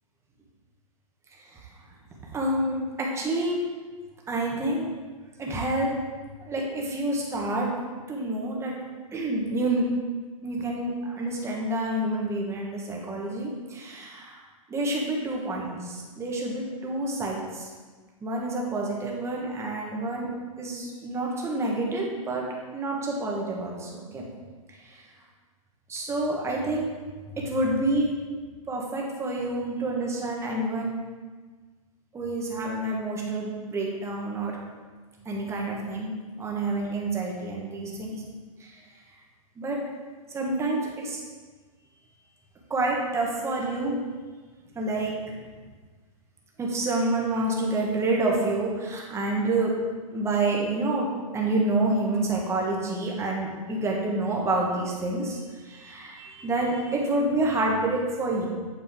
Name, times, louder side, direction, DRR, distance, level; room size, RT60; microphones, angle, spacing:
voice 1, 2.3-3.6 4.3-4.9 5.4-5.9 6.5-7.7 8.1-8.7 9.1-9.8 10.4-14.4 14.7-17.7 18.2-20.3 20.6-22.4 22.7-24.2 25.9-26.9 27.4-28.1 28.7-30.9 32.1-34.6 35.2-38.2 38.6-38.8 39.6-39.8 40.3-41.2 42.7-43.9 44.7-45.3 46.6-49.7 50.1-51.1 51.3-55.4 55.6-58.5, right 2 dB, 15° right, -2 dB, 1.7 m, -28 dB
8.9 x 6.8 x 3.9 m, 1.4 s
hypercardioid pair, 130°, 18 cm